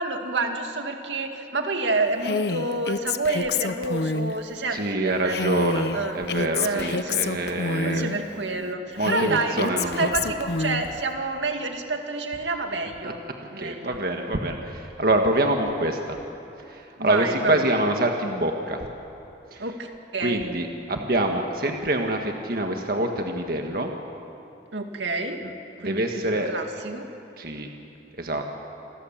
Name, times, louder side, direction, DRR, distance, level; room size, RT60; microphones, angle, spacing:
voice 1, 0.0-5.7 5.9-6.2 6.6-7.2 7.8-13.2 13.5-14.0 17.0-17.7 19.6-20.5 24.7-25.4 25.8-27.1, right 3 dB, 85° right, 4 dB, 2.3 m, -29 dB
Female speech woman speaking, 2.2-4.4 5.3-8.2 9.0-10.9, left 3 dB, 65° left, 0.8 m, -27 dB
voice 2, 4.7-5.9 6.1-8.1 9.0-10.1 13.0-13.1 13.6-16.2 16.7-18.8 19.5-19.6 20.2-23.9 25.8-26.5 27.4-27.7 28.2-28.4, right 1 dB, 55° right, 3 dB, 1.7 m, -25 dB
28.0 x 21.5 x 7.4 m, 2.9 s
head